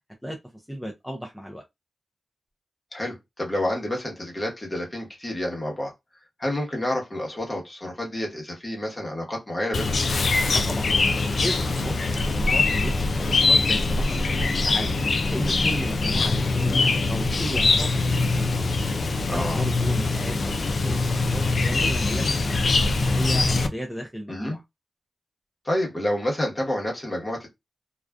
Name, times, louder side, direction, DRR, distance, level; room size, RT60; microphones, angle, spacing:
voice 1, 0.2-1.6 10.5-10.9 11.3-12.0 12.3-14.9 15.3-18.6 19.3-22.6 22.9-24.6, equal, 5° left, 0.5 m, -34 dB
voice 2, 2.9-5.9 6.4-10.0 19.3-19.6 24.3-24.6 25.6-27.5, left 1 dB, 30° left, 1.1 m, -29 dB
Chirp tweet, 9.7-23.7, left 3 dB, 65° left, 0.4 m, -23 dB
2.4 x 2.3 x 2.3 m
cardioid pair, 65°, 0 cm